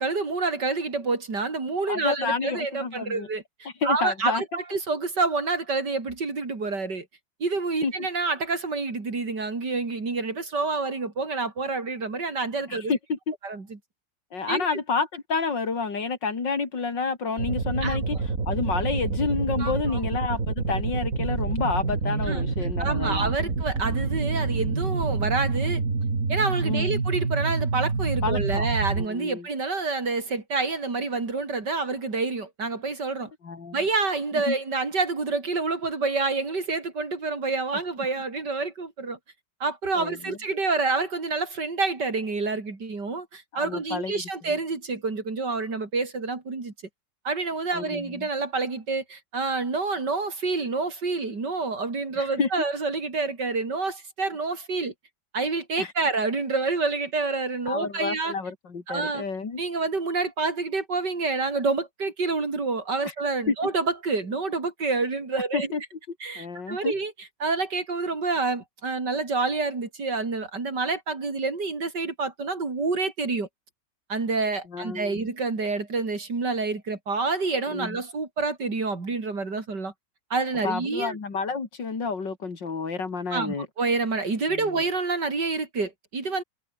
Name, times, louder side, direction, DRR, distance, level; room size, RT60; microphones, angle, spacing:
voice 1, 0.0-7.1 7.4-12.9 13.4-13.6 14.5-14.7 17.8-18.0 19.6-20.0 22.2-22.5 22.8-25.8 26.3-33.3 33.7-39.2 39.6-46.7 47.2-54.9 55.3-58.3 58.9-59.2 59.6-65.7 66.2-67.1 67.4-73.5 74.1-79.9 80.3-81.2 83.3-86.4, right 3 dB, 65° right, 4.5 m, -28 dB
voice 2, 1.9-3.3 3.8-4.4 7.8-7.9 12.7-13.3 14.3-18.2 18.5-23.3 26.6-27.0 28.2-28.7 29.0-29.5 33.4-33.8 34.5-34.6 39.9-40.4 43.6-44.2 47.7-48.3 52.2-52.5 55.8-55.9 57.7-59.6 63.5-63.6 65.5-65.8 66.4-66.9 74.7-75.3 77.7-78.0 80.6-83.7 84.5-84.8, left 4 dB, 75° left, 3.7 m, -29 dB
sound 1, 17.4-29.1, right 4 dB, 45° right, 3.2 m, -27 dB
omnidirectional pair, 2.0 m